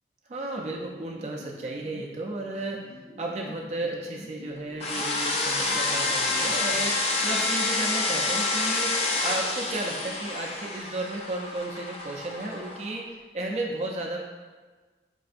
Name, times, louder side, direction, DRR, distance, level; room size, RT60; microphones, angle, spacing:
voice 1, 0.3-2.8 3.2-8.9 9.2-14.2, right 2 dB, 40° right, -1 dB, 0.3 m, -33 dB
sound 1, 0.7-7.4, left 1 dB, 65° left, 0.7 m, -48 dB
sound 2, 4.8-12.9, left 3 dB, 35° left, 0.4 m, -28 dB
5.2 x 2.5 x 2.4 m, 1.4 s
head